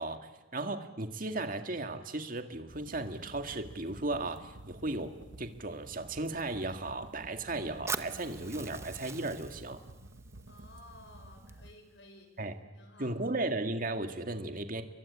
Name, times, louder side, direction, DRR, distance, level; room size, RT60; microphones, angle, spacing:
voice 1, 0.0-9.8 12.4-12.5 13.0-14.8, right 2 dB, 50° right, 7 dB, 2.1 m, -36 dB
sound 1, 2.7-11.7, right 1 dB, 80° right, 1.3 m, -52 dB
Fire, 7.9-11.9, right 4 dB, 15° right, 1.0 m, -43 dB
voice 2, 10.5-12.5 12.7-13.2, left 2 dB, 70° left, 6 dB, 5.8 m, -55 dB
30.0 x 22.5 x 8.7 m, 1.1 s
head